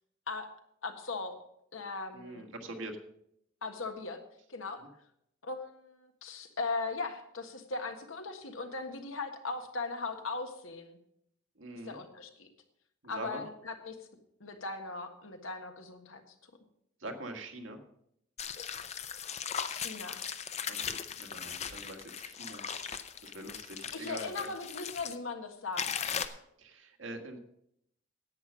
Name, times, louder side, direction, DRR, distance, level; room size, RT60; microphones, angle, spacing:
voice 1, 0.8-1.4 1.7-2.5 3.6-4.2 4.5-4.8 5.4-11.0 11.8-12.5 13.1-14.1 14.4-16.3 19.7-20.2 23.9-26.1, left 3 dB, 85° left, 5 dB, 1.6 m, -39 dB
voice 2, 2.1-3.0 4.8-4.9 11.6-12.0 13.0-13.4 17.0-17.8 20.7-24.5 26.6-27.4, right 2 dB, 75° right, 3 dB, 1.7 m, -44 dB
sound 1, 18.4-25.2 25.8-26.3, left 7 dB, 35° left, 0.6 m, -38 dB
10.5 x 8.6 x 6.2 m, 0.75 s
head